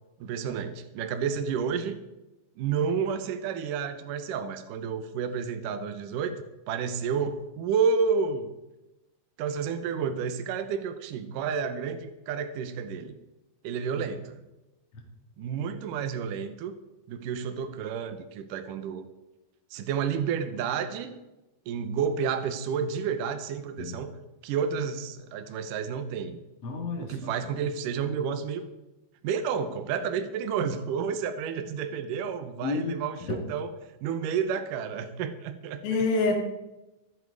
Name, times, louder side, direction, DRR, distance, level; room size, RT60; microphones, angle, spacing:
voice 1, 0.2-2.0 2.6-8.5 9.4-13.2 13.6-14.4 15.4-16.8 17.1-19.1 19.7-21.2 21.7-24.1 24.4-26.4 27.0-28.7 29.2-33.7 34.0-36.0, right 6 dB, 75° right, 8 dB, 2.0 m, -30 dB
voice 2, 26.6-27.1 32.6-33.0 33.3-33.4 35.8-36.3, left 3 dB, 45° left, 1 dB, 2.3 m, -27 dB
14.5 x 12.0 x 4.8 m, 0.98 s
omnidirectional pair, 5.0 m